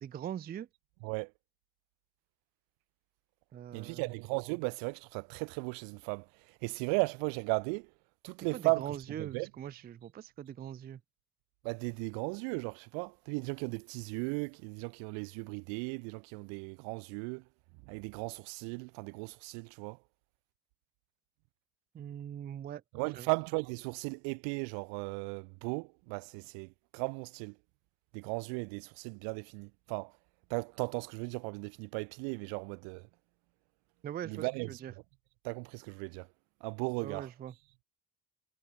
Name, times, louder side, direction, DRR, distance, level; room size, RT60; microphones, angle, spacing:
voice 1, 0.0-0.7 3.5-4.1 8.5-11.0 21.9-23.3 34.0-34.9 37.0-37.6, right 10 dB, 25° right, 0.3 m, -42 dB
voice 2, 3.7-6.2 6.6-7.9 8.2-8.9 9.1-9.5 11.6-17.4 17.9-20.0 22.9-27.5 28.1-30.1 30.5-33.0 34.3-34.7 35.4-36.3 36.6-37.3, right 38 dB, 85° right, 0.7 m, -36 dB
supercardioid pair, 65°, 43 cm